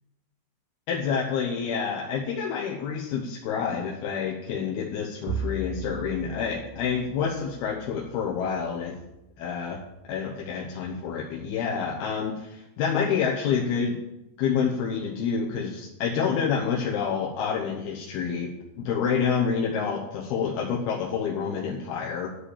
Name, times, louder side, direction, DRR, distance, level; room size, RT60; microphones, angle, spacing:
voice 1, 0.9-9.0 9.4-9.8 10.1-14.0 14.4-22.4, left 6 dB, 85° left, -2 dB, 3.1 m, -28 dB
Bowed string instrument, 5.3-9.9, right 4 dB, 85° right, 2.6 m, -38 dB
11.5 x 5.2 x 8.4 m, 0.91 s
omnidirectional pair, 4.4 m